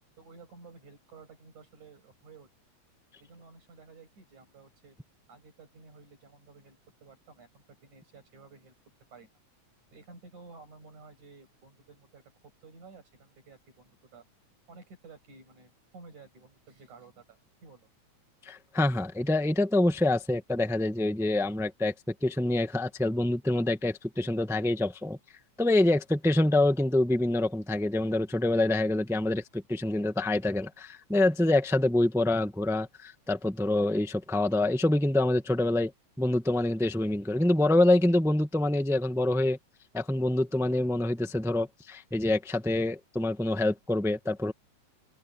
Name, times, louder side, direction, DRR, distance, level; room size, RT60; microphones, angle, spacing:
voice 1, 0.2-2.5 3.2-5.0 5.3-8.8 9.1-9.3 9.9-14.2 14.7-17.9, right 4 dB, 80° right, 8.9 m, -53 dB
voice 2, 18.4-25.2 25.6-35.9 36.2-39.6 39.9-44.5, left 1 dB, 5° right, 0.4 m, -26 dB
open air
omnidirectional pair, 3.4 m